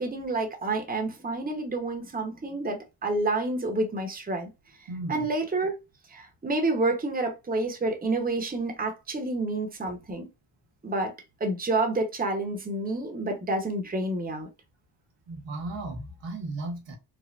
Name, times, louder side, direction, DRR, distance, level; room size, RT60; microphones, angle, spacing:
voice 1, 0.0-4.5 5.1-5.8 6.1-10.3 10.8-11.1 11.4-14.5, right 2 dB, 20° right, 1.0 m, -29 dB
voice 2, 4.9-5.3 15.3-17.0, right 2 dB, 70° right, 1.0 m, -35 dB
3.3 x 2.1 x 2.5 m
supercardioid pair, 55°, 45 cm